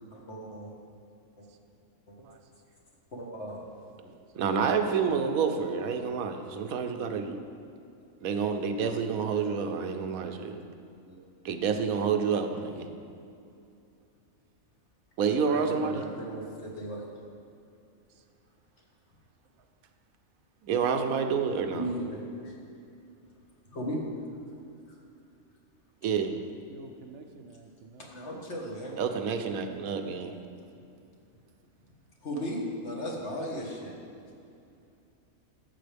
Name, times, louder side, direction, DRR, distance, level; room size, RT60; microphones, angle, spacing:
voice 1, 0.1-0.7 2.1-2.2 3.1-3.6 4.4-4.5 11.1-11.2 15.5-17.1 21.7-22.5 23.7-24.0 28.1-28.9 32.2-33.9, equal, 55° left, -2 dB, 1.7 m, -36 dB
voice 2, 4.4-7.4 8.2-10.6 11.4-12.9 15.2-16.0 20.7-21.8 26.0-26.3 29.0-30.3, right 6 dB, 85° right, 6 dB, 1.1 m, -28 dB
voice 3, 26.4-28.1, right 3 dB, 65° right, 5 dB, 0.8 m, -49 dB
13.0 x 7.4 x 3.4 m, 2.6 s
omnidirectional pair, 1.4 m